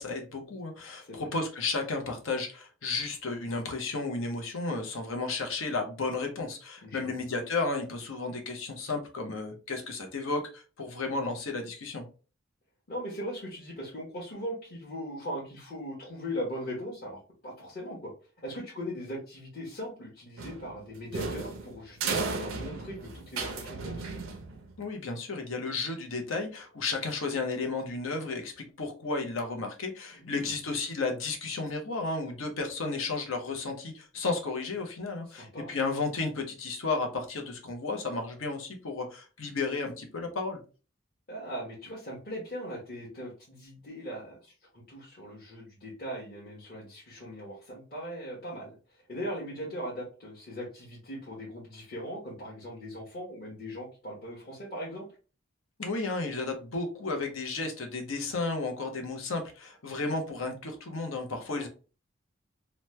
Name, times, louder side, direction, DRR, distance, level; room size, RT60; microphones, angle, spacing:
voice 1, 0.0-12.0 24.8-40.6 55.8-61.7, left 3 dB, 80° left, 3 dB, 0.8 m, -33 dB
voice 2, 6.8-7.2 12.9-18.1 18.4-23.9 30.2-30.5 35.3-35.7 41.3-48.7 49.1-55.1 61.5-61.7, equal, 50° left, -6 dB, 1.0 m, -39 dB
sound 1, 20.4-24.8, right 4 dB, 90° right, 0.6 m, -35 dB
3.0 x 2.2 x 3.1 m, 0.35 s
head